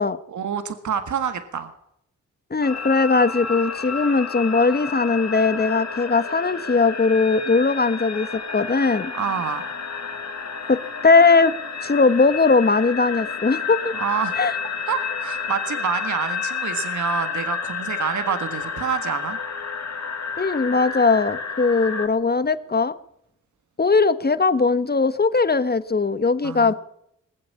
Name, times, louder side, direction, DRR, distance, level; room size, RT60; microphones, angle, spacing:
voice 1, 0.3-1.7 9.1-9.7 13.9-14.4 14.9-19.4 26.4-26.7, right 7 dB, 65° right, 10 dB, 1.8 m, -27 dB
voice 2, 2.5-8.3 8.5-9.1 10.6-11.5 11.8-13.9 14.4-14.5 20.4-22.9 23.8-26.7, left 4 dB, 30° left, 14 dB, 1.4 m, -19 dB
sound 1, 2.6-22.1, left 5 dB, 55° left, 2.3 m, -31 dB
21.0 x 7.8 x 8.6 m, 0.75 s
cardioid pair, 55°, 32 cm